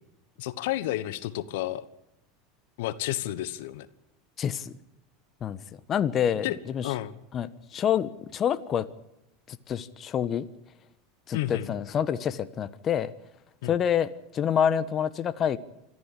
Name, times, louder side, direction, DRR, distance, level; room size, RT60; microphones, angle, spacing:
voice 1, 0.4-1.8 2.8-3.9 6.4-6.6 6.8-7.1 11.3-11.7 13.6-13.8, left 15 dB, 70° left, 15 dB, 1.2 m, -31 dB
voice 2, 4.4-4.7 5.4-5.6 5.9-6.9 7.3-8.9 9.5-10.4 11.3-13.1 13.6-15.6, left 9 dB, 40° left, 14 dB, 1.2 m, -27 dB
26.0 x 14.0 x 8.4 m, 0.89 s
hypercardioid pair, 90°, 0 cm